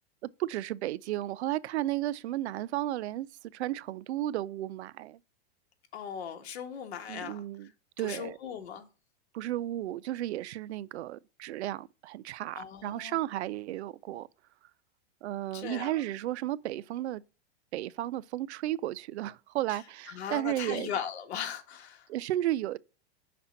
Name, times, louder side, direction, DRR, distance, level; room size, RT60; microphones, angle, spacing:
voice 1, 0.4-3.3 3.5-5.2 7.1-7.7 8.0-8.4 9.3-14.3 15.2-17.2 17.7-20.9 22.1-22.8, right 14 dB, 85° right, 0.5 m, -33 dB
voice 2, 5.9-7.4 8.0-8.9 12.6-13.2 15.5-15.9 20.1-22.1, left 8 dB, 75° left, 1.5 m, -38 dB
5.9 x 4.2 x 5.6 m
supercardioid pair, 165°, 33 cm